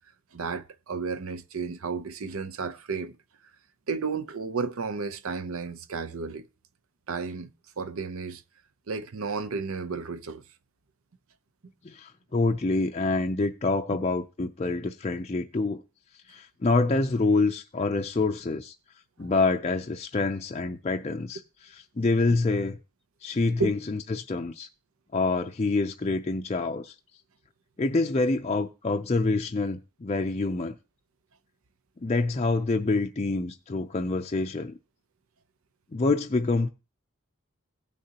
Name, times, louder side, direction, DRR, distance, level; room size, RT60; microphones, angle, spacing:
voice 1, 0.3-3.2 3.9-6.5 7.1-7.5 7.8-8.4 8.9-10.4 23.6-23.7, right 4 dB, 75° right, 0.7 m, -32 dB
voice 2, 11.8-15.8 16.3-18.7 19.2-21.4 21.7-22.8 23.2-24.7 25.1-26.9 27.8-30.7 32.0-34.8 35.9-36.7, left 3 dB, 30° left, 0.4 m, -26 dB
16.5 x 6.5 x 2.8 m
head